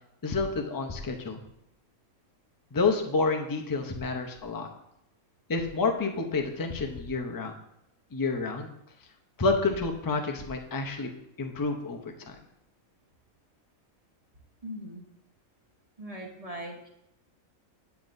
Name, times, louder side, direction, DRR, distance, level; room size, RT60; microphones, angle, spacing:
voice 1, 0.2-1.4 2.7-4.7 5.5-7.5 8.1-8.7 9.4-11.1 11.4-12.0 12.3-12.4, left 3 dB, 35° left, 4 dB, 0.3 m, -29 dB
voice 2, 14.6-15.0 16.0-16.9, equal, 30° right, 0 dB, 1.0 m, -40 dB
9.1 x 8.0 x 2.6 m, 0.81 s
omnidirectional pair, 1.5 m